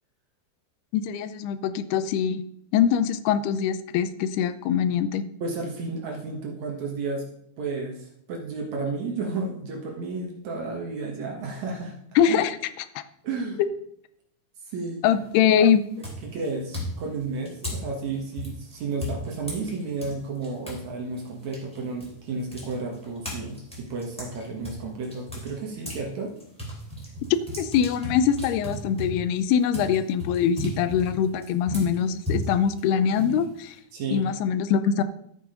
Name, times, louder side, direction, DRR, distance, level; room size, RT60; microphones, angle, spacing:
voice 1, 0.9-2.4 2.7-5.2 12.2-12.6 13.0-13.1 13.6-13.7 15.0-15.9 27.6-33.8 34.1-35.0, left 8 dB, 85° left, 12 dB, 2.7 m, -23 dB
voice 2, 5.4-7.3 7.6-11.9 13.2-13.6 14.7-15.0 16.2-26.3 33.9-34.3, right 3 dB, 55° right, 0 dB, 2.4 m, -32 dB
sound 1, 15.1-15.5 16.0-20.8 21.2-26.0 26.4-33.8, equal, ahead, 2.8 m, -35 dB
12.5 x 6.4 x 5.1 m, 0.71 s
omnidirectional pair, 4.5 m